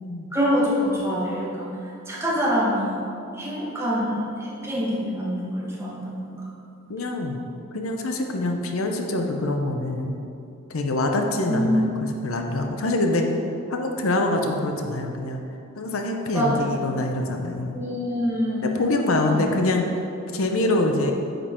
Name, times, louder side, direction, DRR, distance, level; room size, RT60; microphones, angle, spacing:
voice 1, 0.3-3.0 3.3-6.5 11.5-11.9 16.3-16.7 17.7-18.7 19.2-19.5, equal, 10° right, -5 dB, 1.4 m, -25 dB
voice 2, 6.9-7.4 7.7-10.2 10.7-13.3 13.7-15.4 15.8-17.8 18.6-19.9 20.3-21.1, left 2 dB, 70° left, 4 dB, 0.7 m, -25 dB
8.9 x 5.3 x 4.3 m, 2.7 s
head